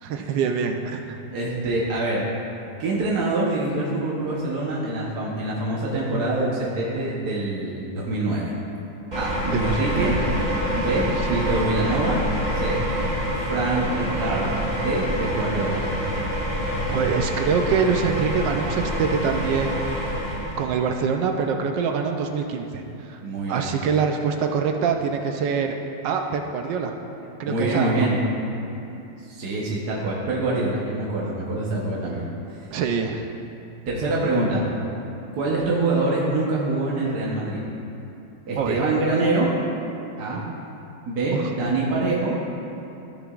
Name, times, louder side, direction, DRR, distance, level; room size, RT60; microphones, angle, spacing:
voice 1, 0.0-1.2 9.5-10.1 11.3-11.4 16.9-19.9 20.6-23.2 23.5-25.7 26.0-26.9 27.4-28.1 32.7-33.3 38.6-38.8 41.3-41.5, right 6 dB, 75° right, 4 dB, 1.2 m, -25 dB
voice 2, 1.3-2.2 2.8-8.5 9.1-10.1 10.7-12.2 12.5-12.8 13.5-14.4 14.8-15.8 23.2-23.7 27.5-28.2 29.2-32.6 33.9-34.7 35.3-37.6 38.5-39.5 40.2-40.4 41.1-42.3, right 2 dB, 60° right, -5 dB, 1.5 m, -25 dB
sound 1, 9.1-20.7, equal, 25° right, 1.4 m, -26 dB
14.0 x 6.8 x 2.4 m, 2.8 s
omnidirectional pair, 2.1 m